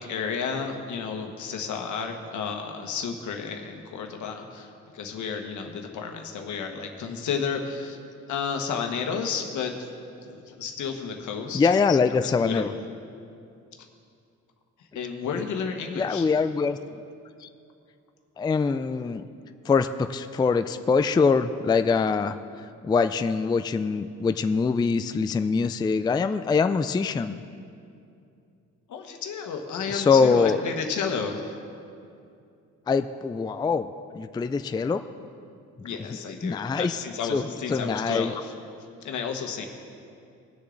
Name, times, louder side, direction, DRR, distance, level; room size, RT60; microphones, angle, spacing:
voice 1, 0.0-8.0 8.3-9.7 10.3-11.7 12.2-12.7 14.9-16.3 28.9-31.5 35.8-38.5 39.0-39.7, left 6 dB, 75° left, 4 dB, 1.4 m, -32 dB
voice 2, 11.5-12.7 16.0-16.8 17.4-17.5 18.4-19.3 19.7-22.4 22.8-27.4 29.9-30.6 32.9-35.0 36.4-37.0 37.3-38.3, left 5 dB, 15° left, 10 dB, 0.3 m, -23 dB
20.5 x 6.8 x 3.9 m, 2.5 s
cardioid pair, 90°, 30 cm